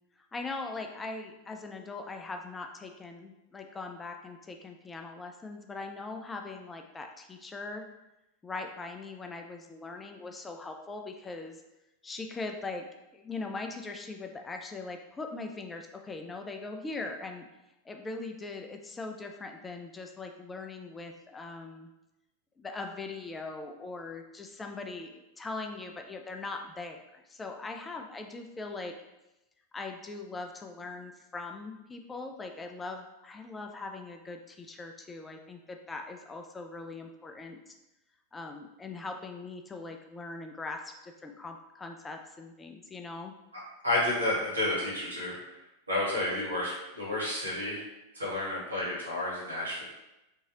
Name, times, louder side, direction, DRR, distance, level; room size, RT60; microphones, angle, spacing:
voice 1, 0.3-7.8 8.4-11.6 12.0-12.9 13.1-17.4 17.8-21.9 22.6-29.0 29.7-37.7 38.3-43.3, left 3 dB, 15° left, 4 dB, 0.3 m, -41 dB
voice 2, 43.8-45.6 45.9-47.8 48.1-49.8, left 1 dB, 80° right, -5 dB, 1.3 m, -31 dB
3.6 x 2.8 x 2.9 m, 0.95 s
figure-of-eight pair, 90°, 0 cm